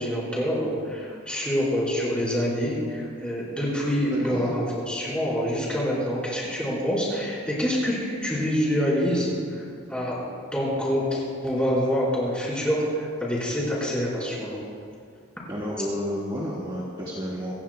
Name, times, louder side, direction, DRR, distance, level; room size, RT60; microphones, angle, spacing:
voice 1, 0.0-10.2 10.5-14.6, equal, 5° left, -7 dB, 4.6 m, -26 dB
voice 2, 4.1-4.5 15.5-17.5, equal, 20° right, -7 dB, 1.7 m, -31 dB
26.0 x 16.0 x 2.3 m, 2.2 s
head